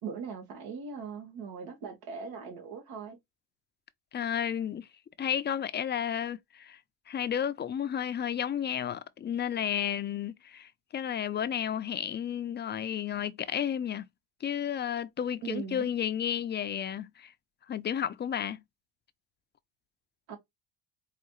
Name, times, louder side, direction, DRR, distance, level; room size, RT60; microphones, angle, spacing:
voice 1, 0.0-3.2 15.4-15.9 20.3-20.4, right 6 dB, 75° right, 1.7 m, -40 dB
voice 2, 4.1-4.9 5.2-6.8 7.1-14.1 14.4-17.3 17.7-18.6, left 9 dB, 30° left, 0.5 m, -32 dB
4.7 x 2.5 x 3.0 m
supercardioid pair, 90°, 37 cm